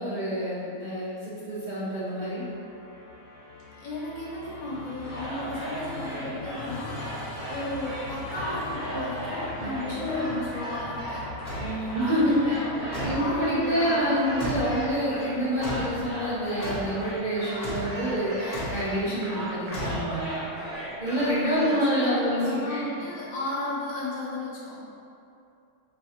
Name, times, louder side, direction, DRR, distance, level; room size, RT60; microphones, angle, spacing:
voice 1, 0.0-2.4 9.6-10.3 11.6-12.6 13.0-20.4 21.0-22.8, equal, 45° right, -11 dB, 0.6 m, -27 dB
Musical instrument, 1.6-16.9, left 3 dB, 85° left, 1.2 m, -42 dB
voice 2, 3.7-11.3 11.8-14.8 21.2-24.8, left 1 dB, 65° left, -6 dB, 1.3 m, -35 dB
sound 1, 5.0-21.7, right 1 dB, 85° right, 1.6 m, -37 dB
sound 2, 11.5-11.8 12.9-13.3 14.4-14.8 15.6-16.0 16.6-17.0 17.6-18.0 18.5-18.9 19.7-20.4, equal, 50° left, 1.1 m, -33 dB
4.9 x 2.7 x 2.8 m, 2.7 s
omnidirectional pair, 1.5 m